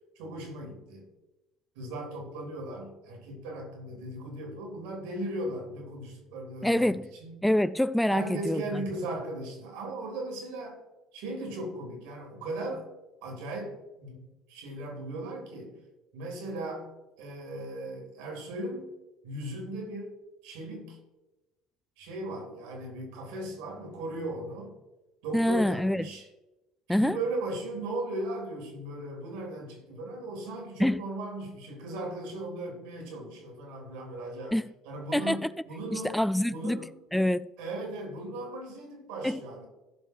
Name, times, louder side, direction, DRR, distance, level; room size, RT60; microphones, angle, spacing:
voice 1, 0.1-1.1 1.7-7.4 8.1-10.8 11.1-12.9 13.2-14.2 14.5-15.7 16.1-16.9 17.2-18.9 19.2-20.1 20.4-21.0 22.0-24.7 25.2-26.3 26.9-34.6 34.8-36.2 36.5-36.9 37.6-39.7, right 2 dB, 75° right, 3.5 m, -37 dB
voice 2, 6.6-7.1 7.4-8.8 25.3-26.1 26.9-27.2 30.8-31.0 34.5-34.7 35.1-35.5 35.9-36.8 37.1-37.5 39.2-39.4, left 1 dB, 5° left, 0.3 m, -26 dB
15.5 x 5.5 x 4.6 m
hypercardioid pair, 70°, 0 cm